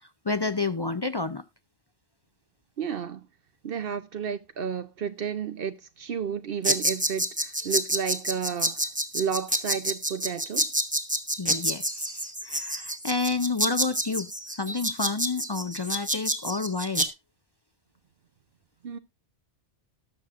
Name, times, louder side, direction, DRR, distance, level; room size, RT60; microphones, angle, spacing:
voice 1, 0.3-1.4 11.4-17.1, left 3 dB, 40° left, 0.4 m, -30 dB
voice 2, 2.8-3.2 3.6-8.9 9.1-10.7 18.8-19.0, right 7 dB, 60° right, 0.8 m, -32 dB
sound 1, 6.6-17.1, right 1 dB, 10° right, 0.9 m, -28 dB
19.0 x 6.3 x 2.5 m
omnidirectional pair, 1.1 m